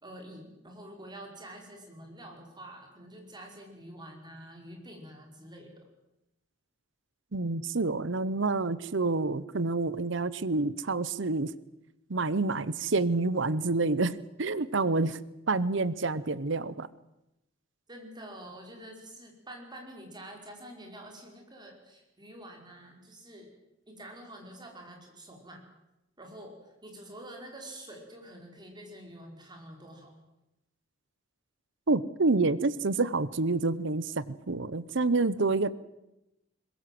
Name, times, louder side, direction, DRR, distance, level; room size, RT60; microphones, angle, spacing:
voice 1, 0.0-5.8 17.9-23.5 23.9-25.6 26.2-30.1, right 1 dB, 20° right, 2 dB, 5.3 m, -47 dB
voice 2, 7.3-11.5 12.1-15.2 15.5-16.9 31.9-35.7, right 3 dB, 65° right, 18 dB, 0.9 m, -28 dB
22.5 x 21.0 x 7.7 m, 0.92 s
head